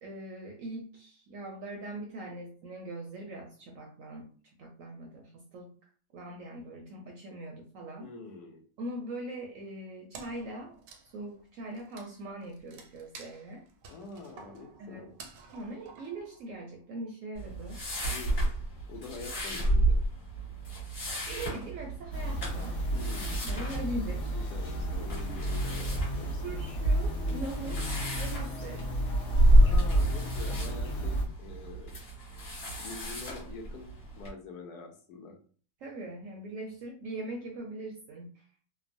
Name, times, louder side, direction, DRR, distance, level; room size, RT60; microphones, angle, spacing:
voice 1, 0.0-4.3 4.6-5.7 6.1-8.1 8.8-10.7 11.1-13.6 14.8-15.1 15.5-17.8 21.3-22.8 23.4-24.3 26.4-28.8 35.8-38.3, right 1 dB, 70° right, 0 dB, 0.8 m, -41 dB
voice 2, 8.0-8.6 13.9-15.1 18.1-18.5 18.9-20.0 22.9-23.4 24.3-26.6 29.6-32.0 32.8-33.9 34.2-35.4, left 3 dB, 75° left, 2 dB, 1.1 m, -45 dB
Wood, 10.1-16.8, right 5 dB, 90° right, 1.2 m, -52 dB
sound 1, 17.3-34.3, right 1 dB, 40° left, 1.3 m, -30 dB
sound 2, 22.1-31.2, right 1 dB, 60° left, 0.8 m, -32 dB
2.9 x 2.0 x 2.5 m, 0.43 s
omnidirectional pair, 1.8 m